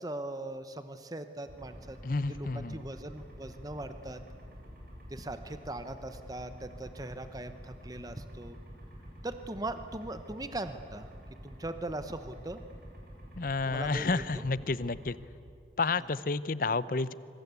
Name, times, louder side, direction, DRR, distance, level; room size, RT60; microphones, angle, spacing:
voice 1, 0.0-4.2 5.1-8.6 9.2-11.1 11.4-12.6 13.6-14.5, right 2 dB, 20° right, 9 dB, 0.9 m, -40 dB
sound 1, 1.5-15.2, equal, 55° right, 7.6 m, -48 dB
voice 2, 2.0-2.8 13.4-15.2 15.8-17.1, left 3 dB, 50° left, 17 dB, 0.7 m, -30 dB
26.0 x 23.5 x 8.3 m, 2.5 s
head